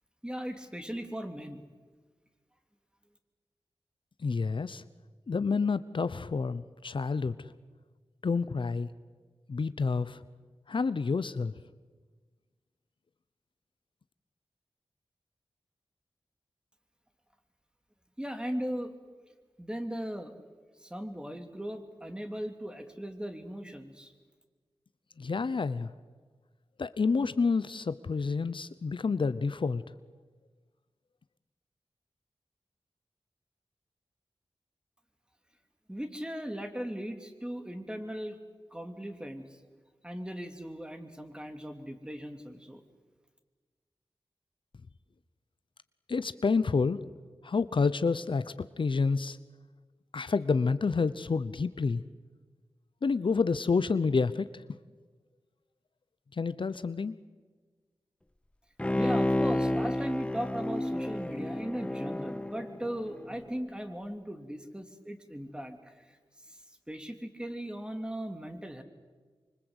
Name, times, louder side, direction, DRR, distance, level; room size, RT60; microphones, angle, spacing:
voice 1, 0.2-1.6 18.2-18.9 19.6-20.3 20.8-24.1 35.9-38.4 38.7-39.6 40.0-42.8 58.9-66.2 66.4-66.6 66.9-68.8, equal, 10° right, 6 dB, 2.8 m, -38 dB
voice 2, 4.2-4.8 5.3-7.5 8.2-8.9 9.5-10.2 10.7-11.5 25.2-25.9 26.8-29.8 46.1-47.0 47.4-49.4 50.1-52.0 53.0-54.6 56.3-57.2, left 4 dB, 60° left, 14 dB, 0.8 m, -29 dB
Bowed string instrument, 58.8-63.4 63.8-63.9, left 1 dB, 10° left, 0.7 m, -31 dB
25.5 x 25.0 x 8.2 m, 1.4 s
wide cardioid pair, 75°, 10 cm